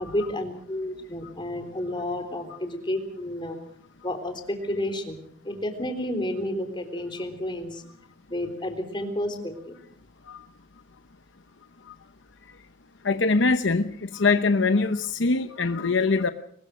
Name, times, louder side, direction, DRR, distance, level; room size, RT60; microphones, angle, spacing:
voice 1, 0.0-3.6 4.0-5.2 5.4-7.8 8.3-9.8, left 1 dB, 25° left, 6 dB, 3.7 m, -31 dB
voice 2, 13.0-16.3, left 3 dB, 65° left, 10 dB, 0.9 m, -23 dB
23.5 x 20.5 x 6.5 m, 0.64 s
head